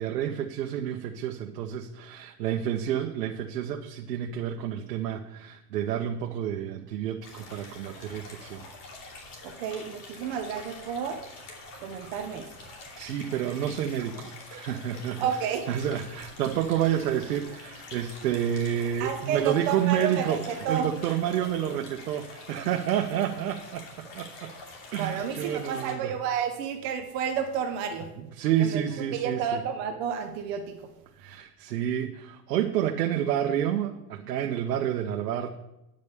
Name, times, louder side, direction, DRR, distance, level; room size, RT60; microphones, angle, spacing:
voice 1, 0.0-8.6 13.0-15.3 15.7-24.5 24.9-26.1 28.4-29.6 31.2-35.5, right 10 dB, 85° right, 3 dB, 1.0 m, -29 dB
sound 1, 7.2-25.9, left 2 dB, 50° left, 2.8 m, -46 dB
voice 2, 9.4-11.2 11.8-12.5 15.2-15.7 19.0-20.9 25.0-28.1 28.6-28.8 29.1-30.9, right 7 dB, 25° right, 6 dB, 0.5 m, -31 dB
9.8 x 5.3 x 6.7 m, 0.91 s
supercardioid pair, 160°, 47 cm